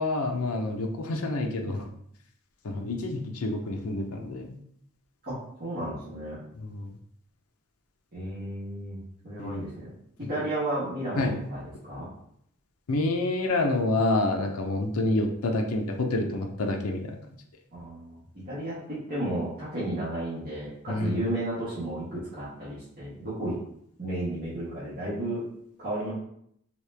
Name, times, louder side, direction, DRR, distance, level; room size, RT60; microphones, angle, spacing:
voice 1, 0.0-1.9 2.6-4.6 6.6-6.9 9.4-9.6 10.2-10.3 11.2-11.4 12.9-17.2 20.9-21.2, left 2 dB, 75° left, 3 dB, 0.6 m, -28 dB
voice 2, 5.2-6.4 8.1-9.9 10.2-12.1 17.7-23.6 24.0-25.4 25.8-26.1, right 1 dB, 40° right, -10 dB, 1.2 m, -33 dB
3.0 x 2.8 x 3.3 m, 0.70 s
head